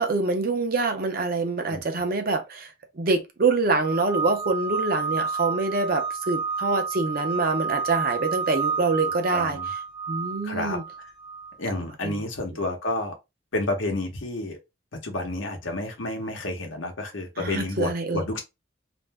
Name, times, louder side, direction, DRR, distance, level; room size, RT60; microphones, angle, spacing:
voice 1, 0.0-2.7 3.0-9.6 10.1-10.8 12.0-12.2 17.4-18.2, right 3 dB, 50° right, 0.5 m, -25 dB
sound 1, 3.8-11.5, right 5 dB, ahead, 0.5 m, -30 dB
voice 2, 9.3-9.7 10.4-10.8 11.6-13.1 13.5-14.6 14.9-18.4, left 2 dB, 85° left, 0.9 m, -30 dB
2.5 x 2.1 x 3.2 m
head